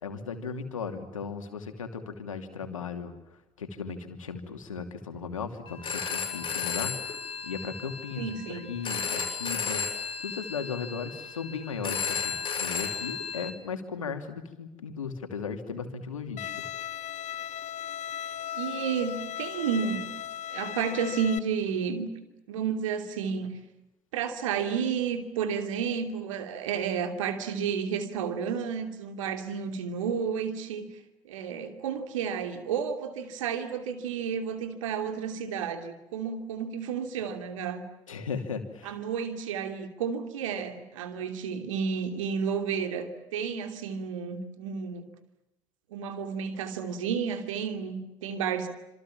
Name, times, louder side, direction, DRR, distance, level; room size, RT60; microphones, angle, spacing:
voice 1, 0.0-3.1 3.6-9.9 10.2-16.5 38.1-39.0, left 5 dB, 75° left, 8 dB, 2.8 m, -36 dB
Telephone, 5.7-13.5, left 6 dB, 30° left, 7.1 m, -34 dB
voice 2, 8.2-8.7 18.3-20.1 20.5-22.1 22.5-23.5 24.1-30.9 31.2-37.8 38.8-45.1 45.9-48.7, right 6 dB, 70° right, 7 dB, 3.0 m, -31 dB
Bowed string instrument, 16.4-21.4, left 10 dB, 45° left, 1.4 m, -37 dB
27.0 x 27.0 x 7.3 m, 0.96 s
figure-of-eight pair, 55°, 17 cm